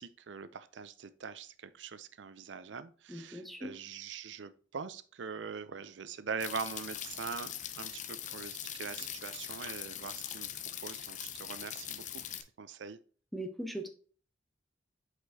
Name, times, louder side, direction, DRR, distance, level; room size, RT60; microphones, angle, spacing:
voice 1, 0.0-10.5 10.8-12.2 12.6-13.0, right 5 dB, 85° right, 13 dB, 0.5 m, -42 dB
voice 2, 3.1-3.7 13.3-13.9, right 1 dB, ahead, 5 dB, 0.9 m, -40 dB
sound 1, 6.4-12.4, left 10 dB, 40° left, 0.6 m, -42 dB
7.9 x 5.0 x 2.8 m, 0.42 s
head